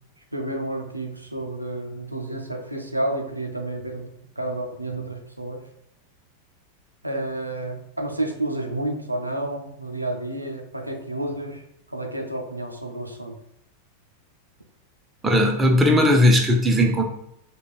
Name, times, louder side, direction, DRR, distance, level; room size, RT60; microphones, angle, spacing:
voice 1, 0.3-4.1 4.4-5.6 7.0-11.6 11.9-13.3, right 1 dB, 85° right, 2 dB, 0.4 m, -30 dB
voice 2, 15.2-17.0, left 1 dB, 10° right, 2 dB, 0.6 m, -17 dB
4.9 x 2.2 x 2.3 m, 0.77 s
figure-of-eight pair, 90°, 0 cm